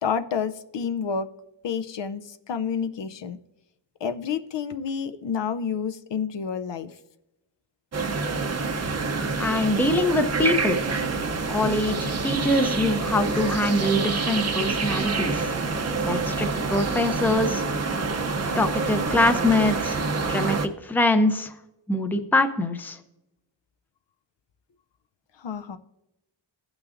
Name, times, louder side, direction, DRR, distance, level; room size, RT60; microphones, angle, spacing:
voice 1, 0.0-1.3 1.6-3.4 4.0-6.9 25.4-25.8, left 6 dB, 65° left, 10 dB, 0.6 m, -29 dB
sound 1, 7.9-20.7, right 4 dB, 35° right, 0.6 m, -27 dB
voice 2, 9.4-10.8 11.5-15.5 16.0-17.7 18.6-21.5 21.9-23.0, left 1 dB, 5° left, 8 dB, 0.5 m, -24 dB
16.5 x 6.1 x 2.5 m, 0.92 s
wide cardioid pair, 175°, 48 cm